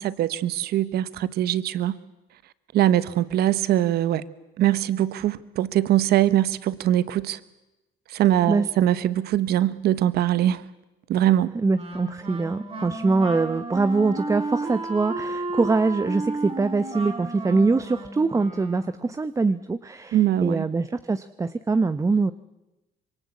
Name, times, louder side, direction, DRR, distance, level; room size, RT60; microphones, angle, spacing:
voice 1, 0.0-2.0 2.7-4.3 4.6-7.4 8.1-10.6 11.1-11.5 20.1-20.7, right 12 dB, 70° right, 16 dB, 1.1 m, -22 dB
voice 2, 11.6-22.3, right 3 dB, 20° right, 13 dB, 0.8 m, -23 dB
Wind instrument woodwind instrument, 11.7-19.1, right 2 dB, 35° right, 5.7 m, -33 dB
25.5 x 23.5 x 8.4 m, 0.99 s
cardioid pair, 110°, 17 cm